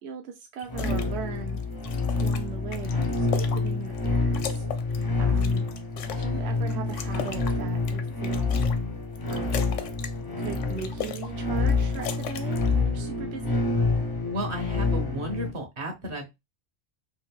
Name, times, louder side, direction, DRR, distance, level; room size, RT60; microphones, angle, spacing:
voice 1, 0.0-1.6 2.2-4.6 4.9-5.6 6.1-8.6 9.3-9.8 10.4-13.6, right 6 dB, 65° right, 0.8 m, -39 dB
sound 1, 0.6-1.1 1.5-4.1 4.3-6.3 6.7-8.8 9.1-10.1 10.4-11.3 11.6-12.7, left 8 dB, 80° left, 1.0 m, -37 dB
sound 2, 0.7-15.5, left 3 dB, 30° left, 0.5 m, -27 dB
voice 2, 14.3-16.3, equal, 50° right, 1.3 m, -33 dB
3.5 x 2.7 x 3.4 m
omnidirectional pair, 1.2 m